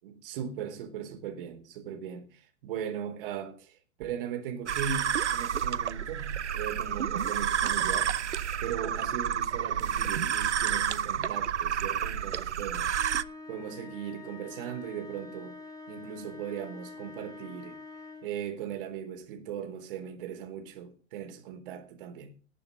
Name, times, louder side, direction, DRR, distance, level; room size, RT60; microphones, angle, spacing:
voice 1, 0.0-8.2 8.6-13.0 13.5-15.6 15.9-17.8 18.2-22.3, right 8 dB, 45° right, 4.1 m, -38 dB
sound 1, 4.7-13.2, right 8 dB, 70° right, 0.9 m, -30 dB
sound 2, 12.9-18.4, left 3 dB, 10° left, 3.1 m, -46 dB
19.0 x 6.9 x 5.3 m
figure-of-eight pair, 105°, 36 cm